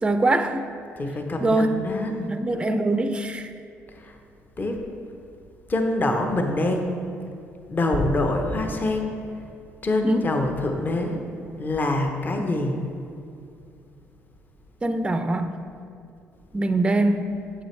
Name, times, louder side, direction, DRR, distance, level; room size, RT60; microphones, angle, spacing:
voice 1, 0.0-0.7 1.4-1.8 2.3-3.5 10.0-10.3 12.4-12.5 14.8-15.6 16.5-17.4, right 2 dB, 15° right, 8 dB, 0.4 m, -23 dB
voice 2, 1.0-2.3 3.9-4.2 4.6-4.8 5.7-7.0 7.7-9.2 9.8-11.2 11.6-12.8, left 2 dB, 35° left, 3 dB, 0.7 m, -25 dB
6.8 x 6.2 x 3.1 m, 2.5 s
supercardioid pair, 65°, 6 cm